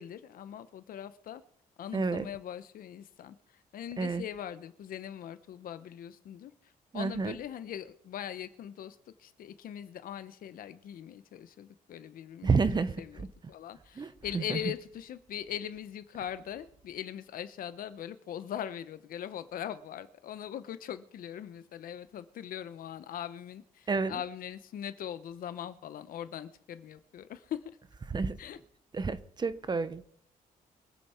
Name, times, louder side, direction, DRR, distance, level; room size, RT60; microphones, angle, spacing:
voice 1, 0.0-1.4 1.8-6.5 6.9-12.5 13.0-27.7 28.4-28.6, left 10 dB, 75° left, 1.0 m, -41 dB
voice 2, 1.9-2.3 4.0-4.2 6.9-7.4 12.4-13.3 14.0-14.1 14.3-14.6 23.9-24.2 28.1-28.4 28.9-30.1, right 4 dB, 30° right, 0.9 m, -30 dB
23.5 x 9.1 x 4.5 m
cardioid pair, 115°, 15 cm